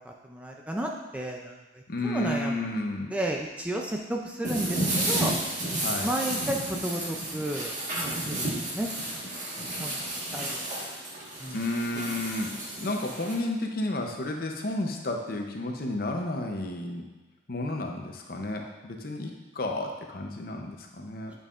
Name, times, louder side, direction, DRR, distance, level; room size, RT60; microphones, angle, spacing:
voice 1, 0.0-2.8 3.1-5.3 6.0-8.4 8.7-8.9 9.6-10.0 10.3-10.7 11.4-11.7, right 1 dB, 5° right, 0 dB, 0.4 m, -33 dB
voice 2, 1.9-3.1 5.8-6.1 11.5-12.5 12.8-17.0 17.5-21.3, left 1 dB, 50° left, 2 dB, 0.7 m, -32 dB
sound 1, 4.4-13.3, right 1 dB, 40° right, 1.5 m, -32 dB
9.0 x 5.4 x 2.5 m, 1.2 s
head